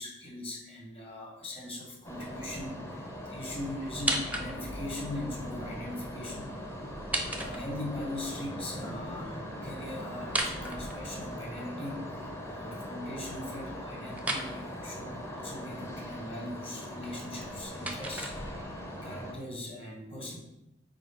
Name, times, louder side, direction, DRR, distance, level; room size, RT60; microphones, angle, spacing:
voice 1, 0.0-6.5 7.4-18.5 19.0-20.4, left 1 dB, 30° left, -1 dB, 1.9 m, -40 dB
sound 1, 2.0-19.3, equal, 15° left, 1.0 m, -40 dB
sound 2, 3.9-4.9 6.9-8.1 10.2-11.5 14.2-14.5 17.2-18.8, right 1 dB, 5° right, 0.7 m, -35 dB
4.9 x 4.5 x 5.8 m, 0.91 s
head